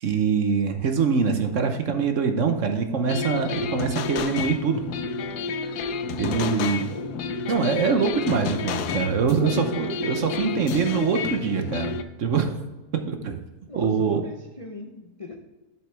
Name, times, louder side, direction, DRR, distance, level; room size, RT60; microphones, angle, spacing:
voice 1, 0.0-4.8 5.7-5.9 6.2-6.8 7.5-12.6 13.1-13.4 13.8-14.2, right 5 dB, 60° right, 6 dB, 1.1 m, -24 dB
sound 1, 3.1-12.0, left 5 dB, 80° left, 1.2 m, -30 dB
voice 2, 6.2-7.3 9.4-9.9 13.7-15.4, left 2 dB, 30° left, 2 dB, 0.7 m, -39 dB
7.9 x 7.8 x 3.4 m, 1.1 s
omnidirectional pair, 1.7 m